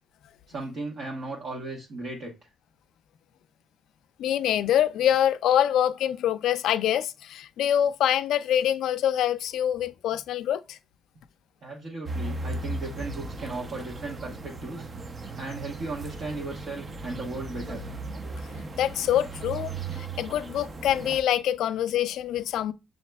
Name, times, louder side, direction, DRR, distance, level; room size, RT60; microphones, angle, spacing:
voice 1, 0.5-2.3 11.6-14.9 15.4-17.8, right 2 dB, 60° right, 1.1 m, -36 dB
voice 2, 4.2-10.8 18.8-22.7, left 10 dB, 80° left, 0.3 m, -25 dB
sound 1, 12.1-21.2, right 3 dB, 35° right, 0.6 m, -37 dB
6.3 x 2.7 x 2.2 m
cardioid pair, 90°, 0 cm